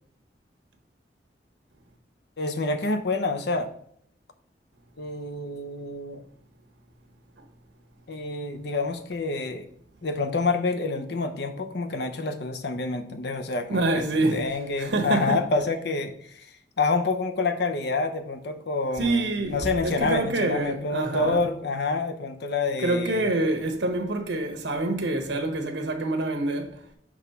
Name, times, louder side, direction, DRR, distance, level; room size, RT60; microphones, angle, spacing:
voice 1, 2.4-3.7 5.0-6.2 8.1-9.7 10.0-23.3, left 3 dB, 65° left, 0.7 m, -28 dB
voice 2, 13.7-14.4 14.8-15.4 19.0-19.6 19.8-21.4 22.8-26.7, right 2 dB, 85° right, 1.1 m, -26 dB
6.1 x 3.2 x 5.6 m
head